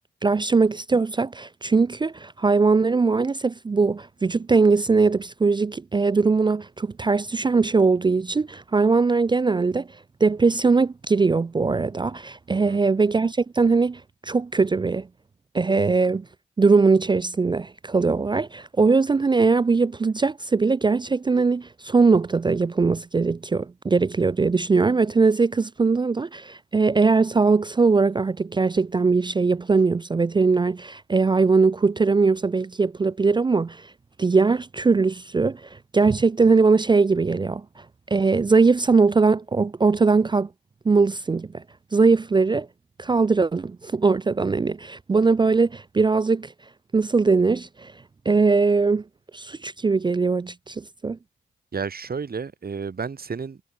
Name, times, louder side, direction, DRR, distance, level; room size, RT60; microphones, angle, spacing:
voice 1, 0.2-9.9 10.2-15.1 15.5-16.3 16.6-33.9 34.2-37.6 38.1-40.5 40.9-41.6 41.9-42.7 43.0-46.5 46.9-47.9 48.3-49.0 49.3-51.2, right 4 dB, 20° right, 0.3 m, -21 dB
voice 2, 12.5-12.8 51.7-53.6, right 5 dB, 45° right, 1.6 m, -32 dB
supercardioid pair, 45°, 21 cm